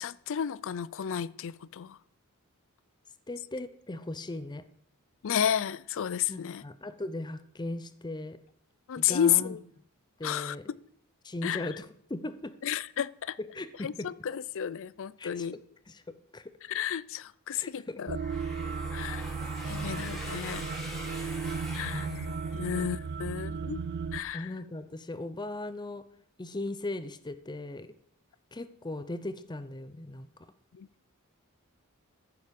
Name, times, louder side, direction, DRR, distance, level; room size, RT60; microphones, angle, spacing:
voice 1, 0.0-2.0 5.2-6.6 8.9-9.6 10.2-10.6 11.4-11.7 12.6-13.4 13.8-15.6 16.7-18.2 18.9-19.3 19.7-20.7 21.7-22.1 22.5-23.8 24.1-24.5 30.7-30.9, left 9 dB, 60° left, 0.4 m, -32 dB
voice 2, 3.3-4.6 6.3-8.4 9.0-9.6 10.2-10.6 11.2-12.6 13.4-14.1 15.2-15.6 15.9-16.6 17.5-18.0 19.0-19.2 19.7-20.0 21.8-22.8 24.3-26.1 26.4-27.9 28.5-30.3, left 2 dB, 20° left, 0.6 m, -38 dB
sound 1, 18.1-24.2, right 5 dB, 50° right, 0.5 m, -35 dB
sound 2, 18.2-23.1, equal, ahead, 3.0 m, -43 dB
14.5 x 6.9 x 5.3 m
head